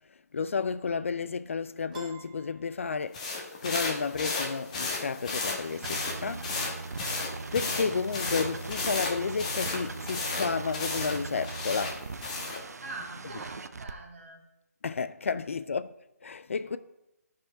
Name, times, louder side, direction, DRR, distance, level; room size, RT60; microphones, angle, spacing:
voice 1, 0.3-3.2 3.6-6.7 7.5-12.0 14.8-15.9 16.2-16.8, left 5 dB, 55° left, 0.3 m, -32 dB
Piano, 1.9-3.5, right 5 dB, 30° right, 1.1 m, -49 dB
sound 1, 3.1-12.6, left 3 dB, 25° left, 1.1 m, -34 dB
sound 2, 5.6-13.9, right 4 dB, 75° right, 0.6 m, -40 dB
voice 2, 12.8-14.4 16.7-16.8, right 3 dB, 45° right, 1.8 m, -43 dB
11.5 x 4.8 x 4.4 m
hypercardioid pair, 170°, 9 cm